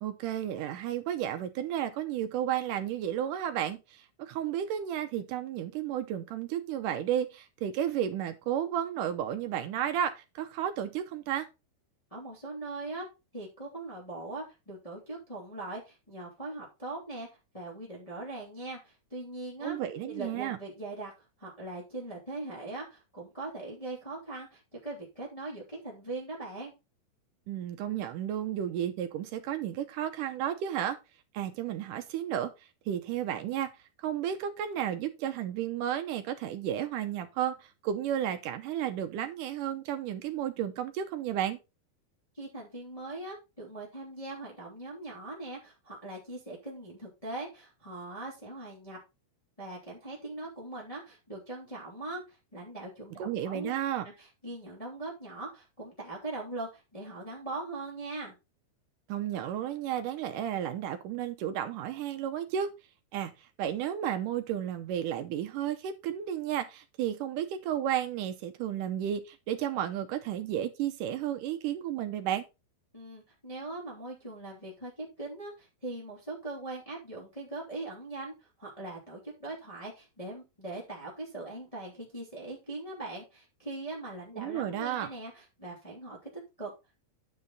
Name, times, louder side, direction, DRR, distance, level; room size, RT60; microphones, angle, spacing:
voice 1, 0.0-11.5 19.6-20.6 27.5-31.0 31.3-32.5 32.9-33.7 34.0-41.6 53.2-54.1 59.1-62.7 63.1-63.3 63.6-72.4 84.3-85.1, right 10 dB, 75° right, 2.0 m, -32 dB
voice 2, 12.1-13.1 13.3-17.3 17.5-19.8 20.0-21.1 21.4-26.7 42.3-49.0 49.6-53.8 54.0-58.3 72.9-86.3 86.6-86.7, right 2 dB, 10° left, 2.1 m, -41 dB
9.7 x 5.6 x 4.0 m
omnidirectional pair, 4.4 m